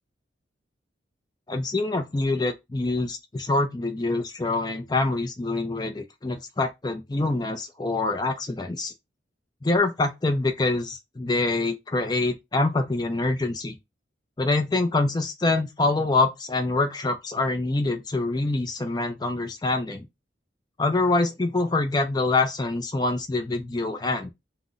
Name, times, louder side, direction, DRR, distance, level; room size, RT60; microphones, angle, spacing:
voice 1, 1.5-8.9 9.6-13.8 14.4-20.1 20.8-24.3, left 2 dB, 20° left, 0.4 m, -25 dB
2.4 x 2.0 x 3.8 m
head